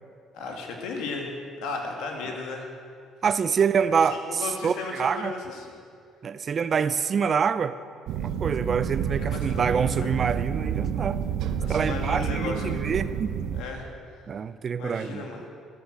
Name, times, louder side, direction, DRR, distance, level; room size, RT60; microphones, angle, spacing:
voice 1, 0.3-1.3 1.6-2.7 4.1-5.8 9.2-10.1 11.6-12.9 13.5-14.2 14.8-15.4, left 4 dB, 85° left, 2 dB, 2.4 m, -35 dB
voice 2, 3.2-5.3 6.2-7.8 8.2-11.2 11.7-13.3 14.3-15.3, right 6 dB, 35° right, 14 dB, 0.5 m, -26 dB
sound 1, 8.1-13.6, right 8 dB, 70° right, 0.8 m, -29 dB
13.5 x 12.5 x 6.4 m, 2.3 s
cardioid pair, 145°, 0 cm